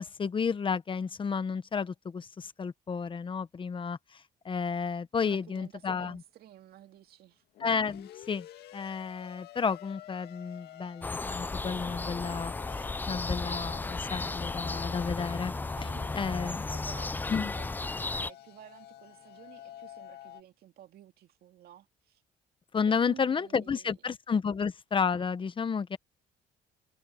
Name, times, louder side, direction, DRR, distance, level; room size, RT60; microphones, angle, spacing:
voice 1, 0.0-6.2 7.6-8.5 8.7-15.9 16.1-16.7 17.3-17.5 22.7-26.0, left 6 dB, 30° left, 1.0 m, -32 dB
voice 2, 5.2-7.4 15.8-17.7 18.1-22.2 22.9-23.9, right 11 dB, 65° right, 2.2 m, -52 dB
sound 1, 5.6-5.7 7.5-20.4, left 13 dB, 70° left, 2.0 m, -49 dB
sound 2, 11.0-18.3, left 3 dB, 10° left, 0.4 m, -34 dB
cardioid pair, 110°, 17 cm